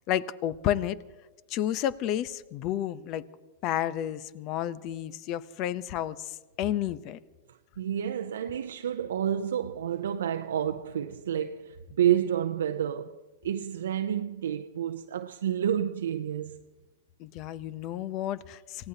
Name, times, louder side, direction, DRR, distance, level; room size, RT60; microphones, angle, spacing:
voice 1, 0.1-1.0 1.5-3.3 3.6-7.2 17.2-18.9, left 11 dB, 45° left, 0.8 m, -31 dB
voice 2, 7.5-16.6, right 10 dB, 80° right, 0.6 m, -30 dB
28.0 x 16.5 x 2.9 m
hypercardioid pair, 110°, 0 cm